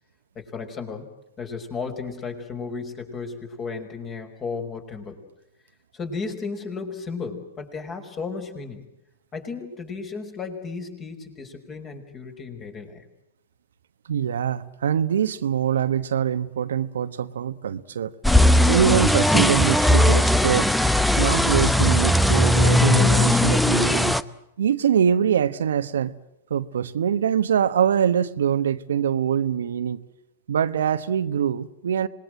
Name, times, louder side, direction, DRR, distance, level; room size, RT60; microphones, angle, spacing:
voice 1, 0.4-1.1 1.4-5.2 5.9-8.8 9.3-13.0, left 4 dB, 25° left, 5.3 m, -34 dB
voice 2, 14.1-18.1 18.7-20.7 21.2-24.1 24.6-26.1 26.5-30.0 30.5-32.1, right 8 dB, 75° right, 1.1 m, -23 dB
sound 1, 18.2-24.2, left 1 dB, ahead, 0.9 m, -18 dB
26.5 x 20.5 x 7.7 m
hypercardioid pair, 110°, 0 cm